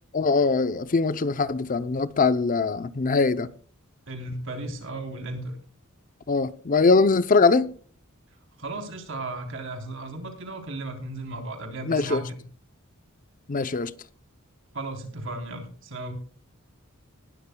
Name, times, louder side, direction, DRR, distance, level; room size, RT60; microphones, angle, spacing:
voice 1, 0.1-3.5 6.3-7.7 11.9-12.2 13.5-13.9, left 4 dB, 40° left, 0.6 m, -22 dB
voice 2, 4.1-5.6 8.6-12.4 14.7-16.1, right 2 dB, 60° right, 3.5 m, -35 dB
20.0 x 12.5 x 2.3 m
head